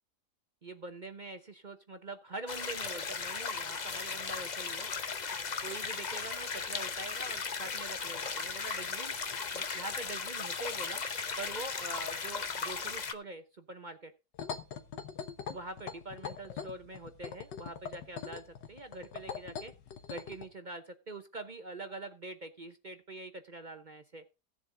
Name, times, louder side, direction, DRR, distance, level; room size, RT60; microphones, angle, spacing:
voice 1, 0.6-4.9 5.6-9.1 9.5-11.0 11.4-14.1 15.4-19.7 20.1-24.2, right 2 dB, 40° right, 8 dB, 0.7 m, -44 dB
sound 1, 2.5-13.1, left 5 dB, 40° left, 0.6 m, -37 dB
sound 2, 14.3-20.5, left 7 dB, 90° left, 1.8 m, -42 dB
16.0 x 7.3 x 3.8 m, 0.29 s
omnidirectional pair, 1.8 m